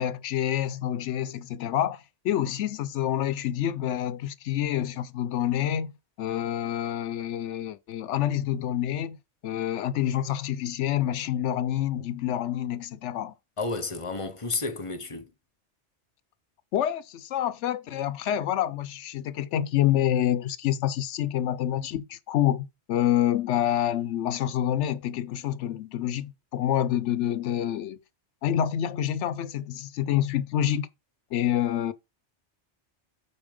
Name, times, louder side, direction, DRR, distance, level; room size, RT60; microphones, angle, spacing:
voice 1, 0.0-5.9 6.2-9.2 9.4-13.3 16.7-28.0 28.4-30.9 31.3-31.9, left 11 dB, 80° left, 0.9 m, -27 dB
voice 2, 13.6-15.3, left 3 dB, 30° left, 0.8 m, -31 dB
8.8 x 4.2 x 5.0 m
omnidirectional pair, 1.2 m